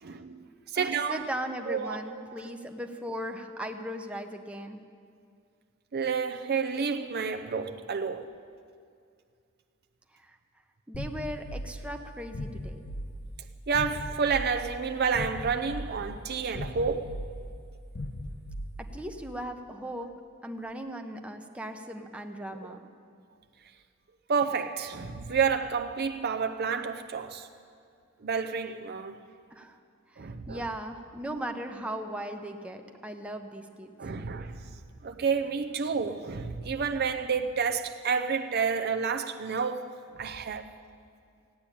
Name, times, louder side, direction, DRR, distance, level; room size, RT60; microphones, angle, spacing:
voice 1, 0.0-1.3 1.7-2.4 5.9-8.3 13.7-17.2 22.6-22.8 24.3-27.5 28.2-29.3 30.2-30.7 34.0-34.7 35.0-40.7, right 5 dB, 50° right, 0.6 m, -30 dB
voice 2, 0.7-4.8 10.2-10.4 10.9-12.8 18.8-20.1 20.4-22.8 29.5-29.8 30.1-33.9, right 1 dB, 5° right, 0.8 m, -38 dB
sound 1, 10.9-19.2, equal, 55° left, 0.9 m, -39 dB
15.5 x 8.6 x 10.0 m
head